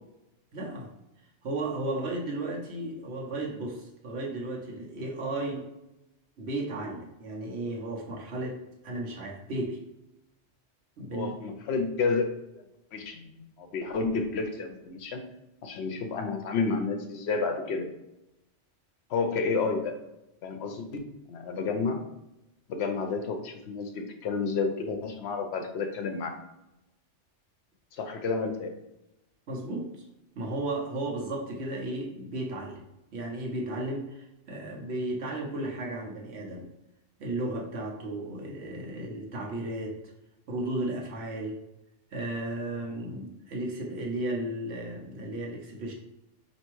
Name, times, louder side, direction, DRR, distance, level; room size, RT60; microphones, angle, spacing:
voice 1, 0.5-0.9 1.4-5.7 6.4-9.8 11.0-11.3 29.5-30.0 30.3-32.8 33.1-36.7 37.2-40.0 40.5-41.6 42.1-45.9, right 2 dB, 65° right, -1 dB, 1.1 m, -34 dB
voice 2, 11.1-12.6 12.9-15.2 15.6-17.8 19.1-19.9 20.4-21.0 21.3-22.0 22.7-26.3 27.9-28.7, left 4 dB, 70° left, 6 dB, 0.8 m, -30 dB
4.4 x 2.9 x 3.0 m, 0.92 s
omnidirectional pair, 1.2 m